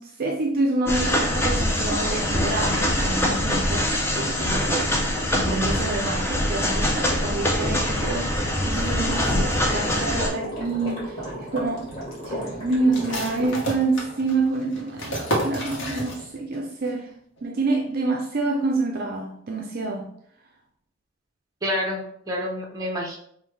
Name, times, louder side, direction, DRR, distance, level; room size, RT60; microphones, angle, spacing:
voice 1, 0.0-3.9 4.1-5.0 5.2-11.2 11.5-11.9 12.3-17.1 17.4-20.1, right 3 dB, 45° right, 0 dB, 0.4 m, -27 dB
sound 1, 0.9-10.3, left 1 dB, 10° left, 0.5 m, -24 dB
sound 2, 9.1-13.5, equal, 30° left, 1.5 m, -33 dB
sound 3, 12.9-16.6 16.8-16.9 17.4-17.8, equal, 60° left, 1.0 m, -31 dB
voice 2, 21.6-23.2, left 1 dB, 15° right, -2 dB, 0.8 m, -28 dB
5.2 x 2.2 x 3.1 m, 0.68 s
head